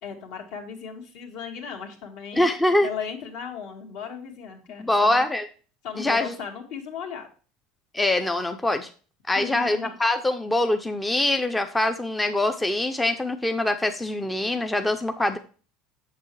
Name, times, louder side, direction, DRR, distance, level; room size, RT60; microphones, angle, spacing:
voice 1, 0.0-2.5 2.8-5.2 5.8-7.3 9.3-10.0, left 7 dB, 65° left, 4 dB, 2.0 m, -36 dB
voice 2, 2.3-2.9 4.8-5.4 6.0-6.3 7.9-8.9 9.3-15.4, left 1 dB, 5° left, 7 dB, 0.4 m, -24 dB
7.3 x 6.8 x 3.2 m, 0.38 s
cardioid pair, 160°, 0 cm